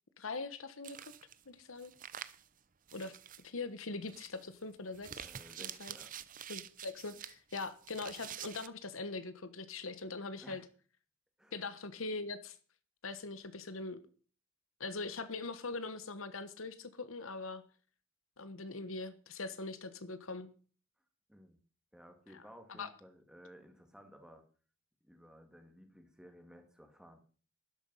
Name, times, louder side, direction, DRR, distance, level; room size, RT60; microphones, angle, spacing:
voice 1, 0.2-1.1 1.5-1.9 2.9-5.3 5.6-5.9 6.5-10.6 11.5-12.6 13.0-14.0 14.8-17.6 18.4-20.5 22.3-22.4 22.7-22.9, left 3 dB, 70° left, 1.2 m, -42 dB
sound 1, 0.8-1.4 1.8-2.5 2.9-3.4 4.0-4.5 4.9-8.7, right 9 dB, 40° right, 0.7 m, -47 dB
voice 2, 5.2-6.1 10.4-10.7 11.4-11.6 21.3-21.6 21.9-24.4 25.0-27.3, equal, 5° right, 2.3 m, -56 dB
13.0 x 11.5 x 5.7 m
head